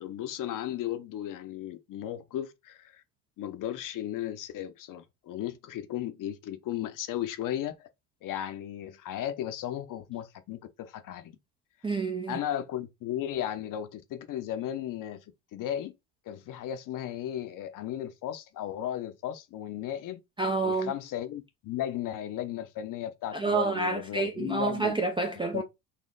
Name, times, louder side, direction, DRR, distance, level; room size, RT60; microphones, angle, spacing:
voice 1, 0.0-3.0 3.4-7.8 8.2-11.3 12.3-15.2 15.5-15.9 16.3-20.2 20.6-24.9 25.5-25.6, left 11 dB, 40° left, 0.7 m, -35 dB
voice 2, 11.8-12.3 20.4-20.9 23.3-25.6, right 3 dB, 10° right, 0.4 m, -28 dB
4.3 x 2.7 x 3.8 m
cardioid pair, 125°, 47 cm